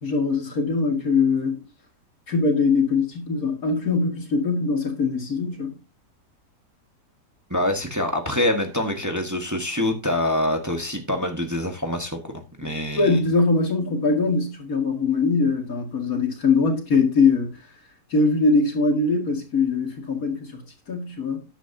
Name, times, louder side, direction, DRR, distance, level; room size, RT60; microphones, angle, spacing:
voice 1, 0.0-1.6 2.3-5.7 13.0-17.6 18.1-21.4, left 4 dB, 55° left, 2.7 m, -22 dB
voice 2, 7.5-12.2 12.6-13.2, left 1 dB, 10° right, 1.3 m, -25 dB
12.0 x 10.0 x 2.8 m
omnidirectional pair, 1.8 m